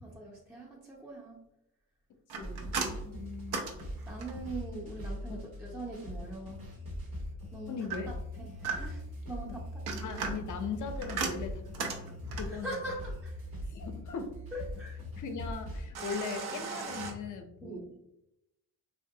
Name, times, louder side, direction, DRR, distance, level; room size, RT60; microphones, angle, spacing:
voice 1, 0.0-1.4 3.0-3.3 4.1-6.7 7.5-8.1 8.4-9.7 10.0-10.1 12.4-13.4 14.5-15.0 17.6-17.8, right 2 dB, 5° right, -4 dB, 0.5 m, -42 dB
sound 1, 2.3-4.6 7.9-9.1 9.7-12.6 15.9-17.1, right 5 dB, 75° right, 0.6 m, -37 dB
voice 2, 2.4-2.8 3.1-3.6 5.3-5.4 7.7-8.1 10.0-12.9 13.7-14.4 15.2-17.9, left 5 dB, 50° left, 6 dB, 0.5 m, -39 dB
sound 2, 2.4-15.9, equal, 55° right, 1.1 m, -41 dB
3.0 x 2.2 x 2.7 m, 0.87 s
cardioid pair, 85°, 38 cm